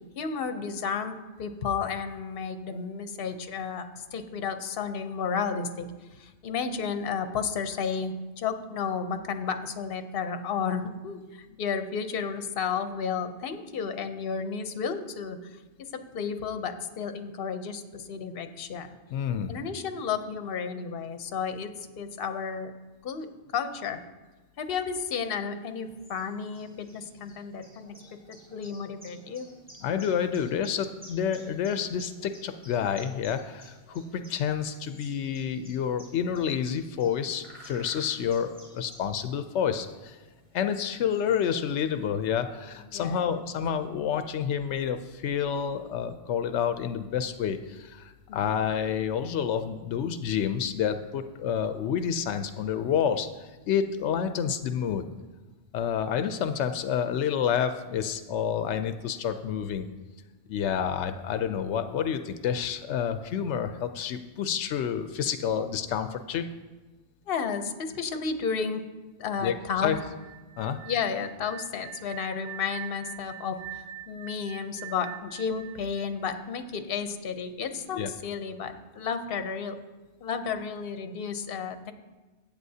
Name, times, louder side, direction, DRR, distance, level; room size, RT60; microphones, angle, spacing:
voice 1, 0.1-5.9 6.2-15.4 15.8-19.0 19.5-21.7 22.0-22.7 23.0-23.3 23.5-24.0 24.6-27.9 28.3-29.5 42.9-43.5 48.3-48.4 67.3-68.8 69.2-69.9 70.9-79.8 80.2-81.9, left 6 dB, 60° left, 8 dB, 0.9 m, -32 dB
voice 2, 19.1-19.6 29.8-40.2 40.5-55.1 55.7-59.9 60.5-66.5 69.4-69.5 69.8-70.0 70.6-70.8 77.9-78.1, left 8 dB, 90° left, 9 dB, 0.9 m, -29 dB
sound 1, 25.6-42.1, equal, 10° right, 2.9 m, -53 dB
sound 2, 69.9-76.8, right 13 dB, 40° right, 0.3 m, -44 dB
14.0 x 8.6 x 2.8 m, 1.2 s
omnidirectional pair, 1.1 m